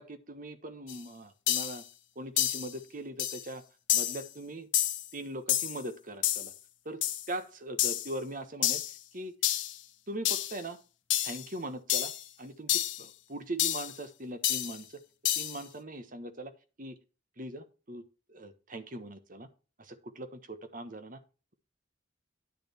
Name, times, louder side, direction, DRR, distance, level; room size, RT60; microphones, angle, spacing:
voice 1, 0.0-1.8 2.1-3.6 3.9-4.7 5.1-6.5 6.8-7.0 7.3-8.8 9.1-9.3 10.1-10.8 11.2-12.1 12.4-14.9 15.4-16.5 16.8-17.0 17.4-18.0 18.3-19.5 19.8-21.2, right 1 dB, 45° right, 9 dB, 1.3 m, -40 dB
sound 1, 0.9-1.0 1.5-1.8 2.4-2.7 3.2-3.4 3.9-4.3 4.7-5.1 5.5-5.8 6.2-6.5 7.0-7.3 7.8-8.1 8.6-9.0 9.4-9.8 10.2-10.6 11.1-11.4 11.9-12.2 12.7-13.0 13.6-13.9 14.4-14.8 15.2-15.6, left 12 dB, 85° left, 1.4 m, -29 dB
10.5 x 6.3 x 4.4 m, 0.34 s
head